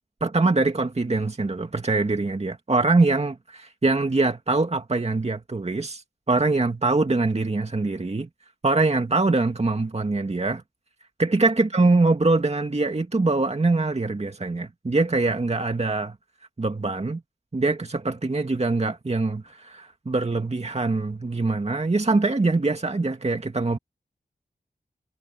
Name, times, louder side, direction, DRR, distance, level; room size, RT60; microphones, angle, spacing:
voice 1, 0.2-6.0 6.3-8.3 8.6-10.6 11.2-16.2 16.6-17.2 17.5-23.8, right 3 dB, 40° right, 2.1 m, -23 dB
wide cardioid pair, 75°, 17 cm